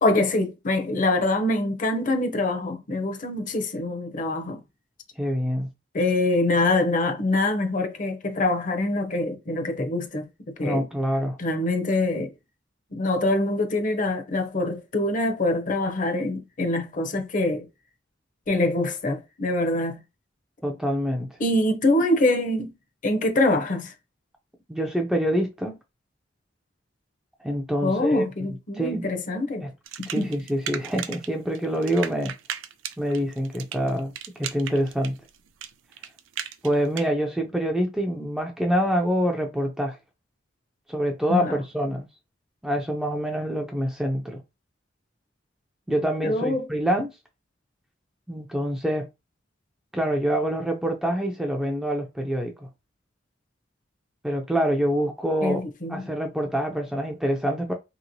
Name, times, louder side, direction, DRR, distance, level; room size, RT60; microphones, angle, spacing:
voice 1, 0.0-4.6 5.9-10.3 10.6-10.9 11.4-12.3 12.9-17.7 18.5-20.0 21.4-22.7 23.0-23.9 27.8-29.7 30.2-30.3 41.3-41.6 46.2-46.7 55.4-56.0, left 2 dB, 45° left, 0.6 m, -24 dB
voice 2, 5.2-5.7 10.6-11.4 20.6-21.3 24.7-25.8 27.4-29.0 29.6-29.7 30.1-32.3 33.0-35.2 36.6-40.0 40.9-42.1 42.6-44.4 45.9-47.1 48.3-49.1 49.9-52.7 54.2-55.6 55.9-57.7, equal, 5° right, 0.4 m, -26 dB
sound 1, 29.9-31.3 31.5-37.1, right 9 dB, 90° right, 0.4 m, -35 dB
2.9 x 2.8 x 2.6 m
head